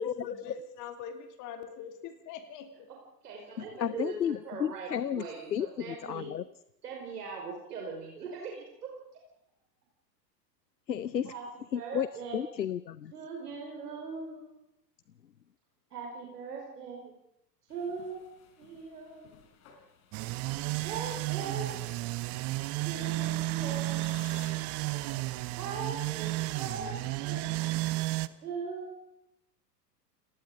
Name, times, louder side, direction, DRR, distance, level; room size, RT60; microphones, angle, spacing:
voice 1, 0.0-2.9 3.7-4.0, left 7 dB, 40° left, 7 dB, 3.1 m, -43 dB
voice 2, 3.2-4.1 4.4-6.3 6.8-9.0 11.2-11.4 11.7-12.5 13.1-14.5 15.9-17.2 17.7-19.3 20.4-21.9 22.2-22.4 22.8-24.5 25.6-27.9 28.4-29.3, right 5 dB, 70° right, 0 dB, 5.4 m, -41 dB
voice 3, 3.8-5.3 5.5-6.4 10.9-11.3 11.7-12.1 12.3-13.1, left 9 dB, 85° left, 19 dB, 0.7 m, -32 dB
sound 1, 17.7-28.3, left 7 dB, 55° left, 4.7 m, -59 dB
sound 2, 20.1-28.3, right 19 dB, 30° right, 0.8 m, -32 dB
29.0 x 19.5 x 5.1 m, 0.79 s
figure-of-eight pair, 95°, 49 cm